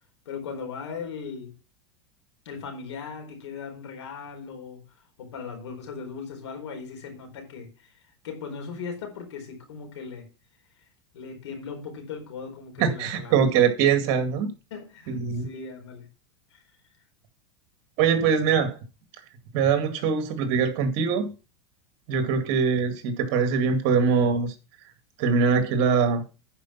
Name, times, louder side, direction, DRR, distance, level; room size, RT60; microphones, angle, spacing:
voice 1, 0.2-1.5 2.4-4.9 5.2-10.3 11.1-13.4 14.7-16.1 16.5-16.6, left 5 dB, 90° left, 4.4 m, -38 dB
voice 2, 12.8-14.5 15.1-15.5 18.0-18.8 19.5-21.3 22.1-24.5 25.2-26.2, right 6 dB, 50° right, 2.3 m, -22 dB
10.5 x 5.2 x 5.8 m
supercardioid pair, 140°, 14 cm